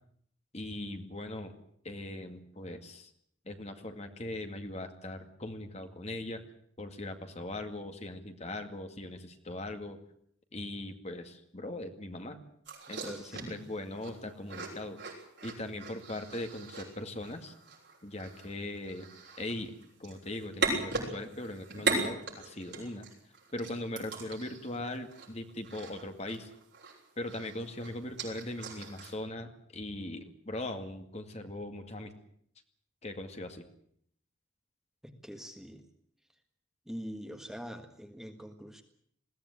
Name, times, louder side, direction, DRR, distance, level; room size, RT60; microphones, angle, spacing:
voice 1, 0.5-1.5 1.8-3.1 3.5-6.4 6.8-10.0 10.5-12.4 12.9-15.0 15.4-17.5 18.0-19.1 19.4-19.7 20.0-23.0 23.5-26.5 27.2-32.1 33.0-33.6, left 1 dB, 30° left, 6 dB, 2.2 m, -40 dB
sound 1, 12.7-27.0 27.3-29.1, right 3 dB, 55° right, 7.8 m, -38 dB
voice 2, 13.0-13.7 35.0-35.9 36.8-38.8, equal, ahead, 5 dB, 1.5 m, -44 dB
21.0 x 16.5 x 9.9 m, 0.67 s
head